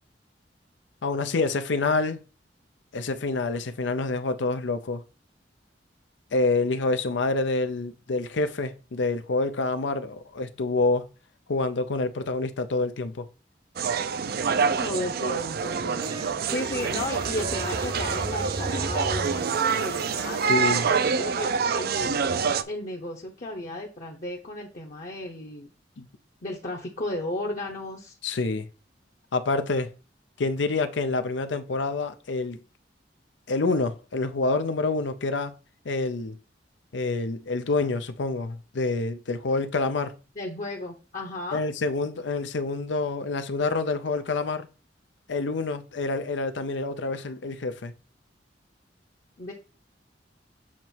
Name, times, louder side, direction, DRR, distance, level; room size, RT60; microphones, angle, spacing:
voice 1, 1.0-2.2 2.9-5.0 6.3-11.0 11.5-13.3 20.5-20.9 26.0-26.1 28.2-28.7 29.3-29.9 30.4-32.6 33.5-35.5 35.9-36.4 36.9-40.1 41.5-44.7 45.3-47.9, left 3 dB, 90° left, 0.6 m, -27 dB
sound 1, 13.8-22.6, right 5 dB, 60° right, 0.4 m, -26 dB
voice 2, 14.8-25.7 26.4-28.2 40.4-41.6 49.4-49.5, left 1 dB, 45° left, 0.9 m, -34 dB
sound 2, 15.6-20.5, right 1 dB, 25° right, 0.8 m, -36 dB
7.3 x 3.0 x 4.5 m
head